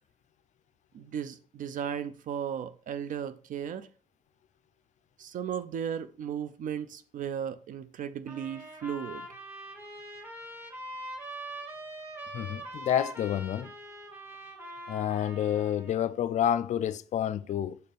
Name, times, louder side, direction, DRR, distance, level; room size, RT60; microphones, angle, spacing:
voice 1, 0.9-3.9 5.2-9.3, right 8 dB, 50° right, 0.4 m, -35 dB
sound 1, 8.3-16.0, right 1 dB, 15° right, 1.4 m, -43 dB
voice 2, 12.3-13.7 14.9-17.8, left 10 dB, 45° left, 0.4 m, -29 dB
6.5 x 4.2 x 3.4 m
cardioid pair, 110°, 17 cm